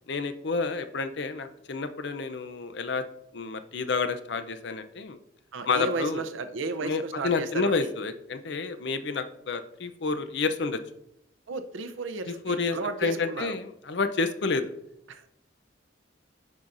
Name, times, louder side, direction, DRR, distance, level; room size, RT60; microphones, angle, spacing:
voice 1, 0.1-3.1 3.3-5.2 5.7-6.2 6.8-10.8 12.3-14.6, left 4 dB, 60° left, 10 dB, 0.6 m, -29 dB
voice 2, 5.5-7.7 11.5-13.6 15.1-15.3, right 3 dB, 85° right, 9 dB, 0.6 m, -33 dB
10.5 x 5.5 x 2.6 m, 0.76 s
head